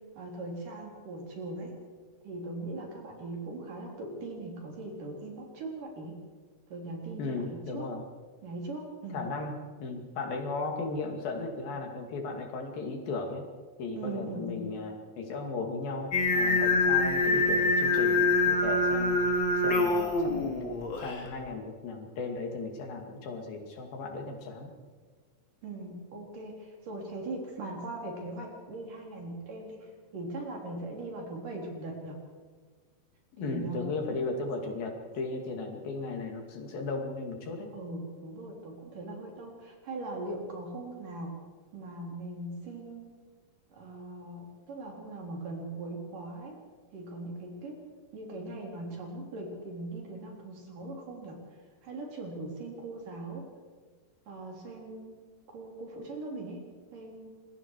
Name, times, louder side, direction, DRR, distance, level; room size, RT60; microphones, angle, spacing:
voice 1, 0.2-1.7 2.2-6.2 6.7-7.9 8.4-9.3 14.0-14.7 25.6-32.2 33.4-33.9 37.7-41.3 41.7-43.1 43.7-46.6 46.9-47.8 48.1-51.4 51.8-53.4 54.3-55.2 55.5-56.6 56.9-57.4, right 2 dB, 65° right, 0 dB, 5.3 m, -40 dB
voice 2, 7.2-8.0 9.1-13.5 13.8-19.2 19.6-20.5 21.0-24.7 33.4-37.7, left 3 dB, 80° left, 3 dB, 4.3 m, -36 dB
Singing, 16.1-21.2, left 2 dB, 40° left, 2.6 m, -25 dB
26.0 x 21.5 x 4.8 m, 1.5 s
omnidirectional pair, 4.1 m